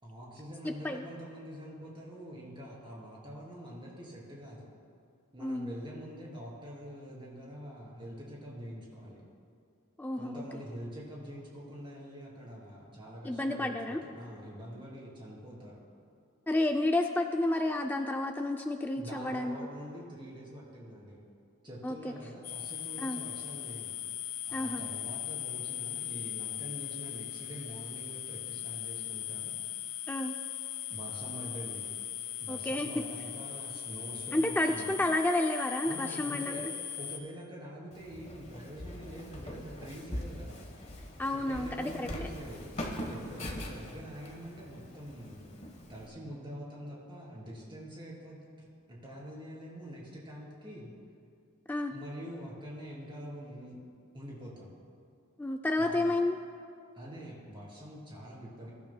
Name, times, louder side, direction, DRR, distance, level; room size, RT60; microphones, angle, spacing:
voice 1, 0.0-4.7 5.3-9.2 10.2-15.8 18.9-21.2 21.6-24.0 24.4-29.6 30.9-31.9 32.4-35.0 35.8-36.7 37.0-40.7 41.3-42.7 43.1-45.6 45.9-50.9 51.9-53.8 54.1-54.7 55.8-56.2 56.9-58.7, equal, 20° right, -5 dB, 3.0 m, -45 dB
voice 2, 0.6-1.0 5.4-5.7 10.0-10.4 13.2-14.0 16.5-19.6 21.8-22.1 23.0-23.2 24.5-24.8 30.1-30.3 32.5-32.9 34.3-36.7 41.2-42.1 51.7-51.9 55.4-56.4, left 1 dB, 10° left, 4 dB, 0.3 m, -30 dB
sound 1, 22.4-37.2, left 11 dB, 75° left, 1.2 m, -39 dB
Walk footsteps, 37.9-46.1, equal, 30° left, 1.1 m, -42 dB
22.0 x 11.5 x 2.2 m, 2.3 s
head